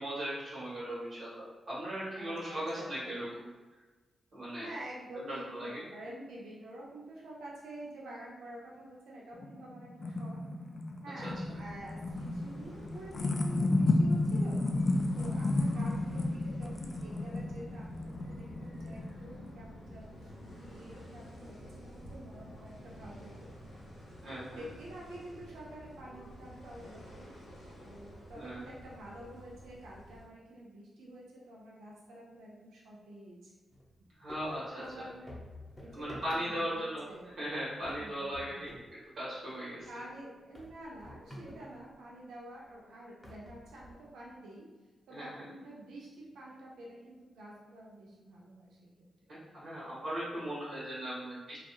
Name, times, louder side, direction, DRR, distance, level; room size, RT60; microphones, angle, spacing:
voice 1, 0.0-3.5 4.3-4.7 5.2-5.8 11.2-11.3 24.2-24.6 28.3-28.6 34.2-34.8 35.9-37.1 37.4-38.8 39.1-39.9 45.1-45.4 49.5-51.6, equal, 70° right, -9 dB, 1.2 m, -38 dB
voice 2, 2.2-3.2 4.6-10.4 11.0-14.6 15.1-23.5 24.3-27.3 27.8-33.5 34.8-35.3 35.8-37.3 38.0-38.7 39.8-44.7 45.1-49.1, right 1 dB, 90° right, -4 dB, 0.5 m, -48 dB
sound 1, 9.4-19.5, left 2 dB, 45° left, 0.3 m, -32 dB
sound 2, 11.3-30.2, equal, 85° left, 0.8 m, -50 dB
sound 3, 33.7-33.9 34.3-36.8 37.2-37.5 37.8-38.9 39.2-39.3 39.8-39.9 40.5-41.9 42.6-42.7 43.2-44.3, left 1 dB, 20° left, 0.7 m, -50 dB
2.7 x 2.3 x 2.3 m, 1.3 s
cardioid pair, 55°, 0 cm